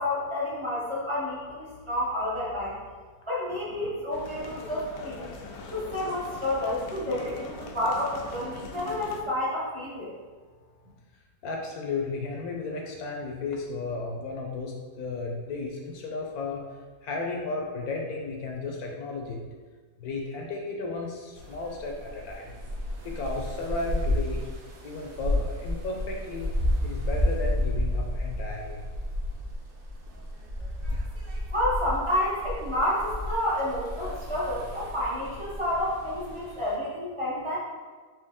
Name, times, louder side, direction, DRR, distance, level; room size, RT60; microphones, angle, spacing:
voice 1, 0.0-2.7 3.3-5.3 5.7-10.1 31.5-37.6, left 1 dB, 30° right, -7 dB, 0.6 m, -29 dB
sound 1, 4.1-9.2, left 4 dB, 90° left, 1.2 m, -42 dB
voice 2, 11.4-16.6 17.0-19.4 20.0-22.5 23.0-24.4 24.8-26.5 26.8-28.8, left 3 dB, 70° left, 0 dB, 1.0 m, -34 dB
sound 2, 21.4-36.7, left 1 dB, 75° right, 0.5 m, -32 dB
4.6 x 2.8 x 3.5 m, 1.4 s
omnidirectional pair, 1.8 m